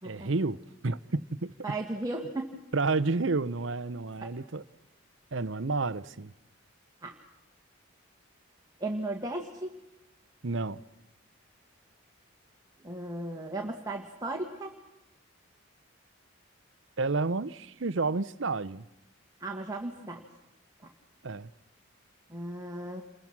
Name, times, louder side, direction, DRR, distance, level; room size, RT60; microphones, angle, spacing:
voice 1, 0.0-1.5 2.7-4.6 5.3-6.3 10.4-10.8 17.0-18.8 21.2-21.5, right 3 dB, 65° right, 0.8 m, -30 dB
voice 2, 1.6-2.6 4.2-4.3 7.0-7.2 8.8-9.8 12.8-14.7 19.4-20.2 22.3-23.0, right 2 dB, 15° right, 1.9 m, -36 dB
29.0 x 22.5 x 6.1 m
head